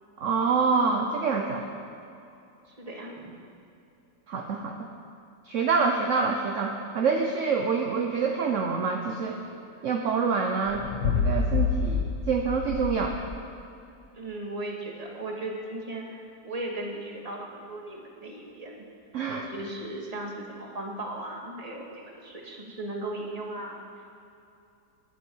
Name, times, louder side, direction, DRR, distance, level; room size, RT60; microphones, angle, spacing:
voice 1, 0.2-1.6 4.3-4.9 5.5-9.4 9.8-13.2 19.1-19.5, right 5 dB, 60° right, 2 dB, 1.1 m, -26 dB
voice 2, 2.8-3.3 14.2-18.9 19.3-24.0, right 2 dB, 25° right, -1 dB, 1.8 m, -37 dB
sound 1, 10.6-13.5, left 5 dB, 75° left, 1.4 m, -28 dB
20.5 x 8.4 x 4.5 m, 2.7 s
omnidirectional pair, 1.7 m